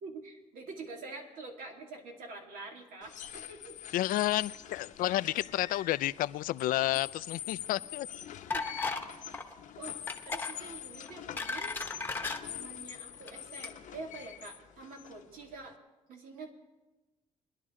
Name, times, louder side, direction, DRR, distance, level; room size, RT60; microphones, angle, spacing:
voice 1, 0.0-3.8 8.5-8.9 9.8-10.0 10.3-11.7 12.4-15.8 16.1-16.5, right 3 dB, 75° right, 1 dB, 2.4 m, -46 dB
sound 1, 3.0-15.7, left 11 dB, 60° left, 0.8 m, -45 dB
voice 2, 3.9-8.1, left 15 dB, 75° left, 16 dB, 0.4 m, -30 dB
sound 2, 8.5-9.1 9.3-9.5 10.1-10.5 11.1-12.4 13.1-13.3 13.6-13.7, left 3 dB, 15° left, 1.0 m, -35 dB
22.0 x 11.0 x 3.7 m, 1.1 s
cardioid pair, 135°, 14 cm